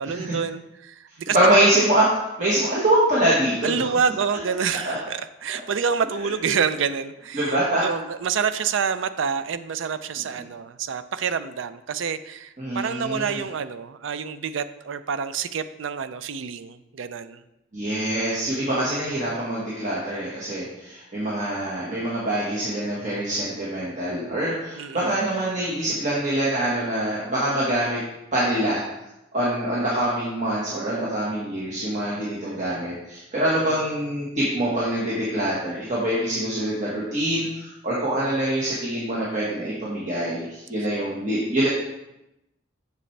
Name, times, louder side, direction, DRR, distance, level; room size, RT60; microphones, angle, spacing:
voice 1, 0.0-1.5 3.6-17.4 24.7-25.2 33.6-33.9, right 6 dB, 75° right, 13 dB, 0.4 m, -28 dB
voice 2, 1.3-3.9 4.8-4.9 7.3-7.8 12.6-13.4 17.7-28.0 28.3-28.8 29.3-41.7, right 1 dB, 40° right, -7 dB, 1.5 m, -24 dB
7.6 x 6.8 x 3.3 m, 0.90 s
head